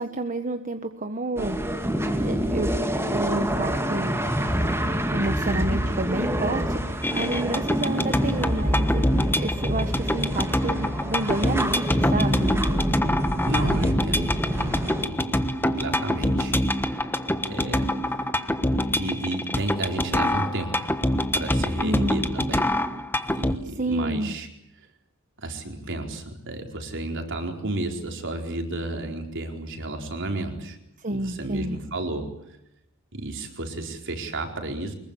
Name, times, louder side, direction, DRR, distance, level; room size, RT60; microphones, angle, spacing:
voice 1, 0.0-1.6 2.2-2.8 3.1-4.2 5.1-12.6 21.8-22.2 23.6-24.4 31.0-31.8, right 2 dB, 40° right, 7 dB, 1.4 m, -29 dB
sound 1, 1.4-15.1, equal, 10° right, 2.2 m, -26 dB
sound 2, 7.0-23.6, left 1 dB, 10° left, 1.3 m, -26 dB
voice 2, 13.5-16.5 16.8-17.1 17.5-18.3 18.9-21.0 21.3-22.7 23.2-24.5 25.4-30.8 31.1-32.3 33.1-34.9, right 2 dB, 60° right, 4 dB, 4.4 m, -32 dB
24.5 x 22.0 x 8.4 m, 0.82 s
head